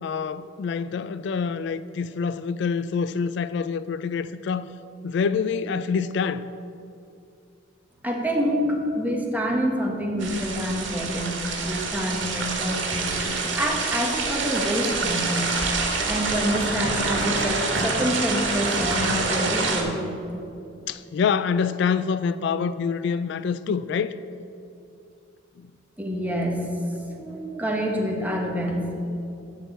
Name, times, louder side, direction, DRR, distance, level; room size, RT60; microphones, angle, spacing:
voice 1, 0.0-4.7 5.0-6.5 20.9-24.1 25.6-25.7, left 6 dB, 65° left, 0.3 m, -26 dB
voice 2, 8.0-15.5 16.0-20.1 26.0-29.0, equal, 10° right, 1.3 m, -27 dB
sound 1, 10.2-19.8, right 3 dB, 85° right, 1.8 m, -26 dB
12.5 x 4.6 x 7.9 m
head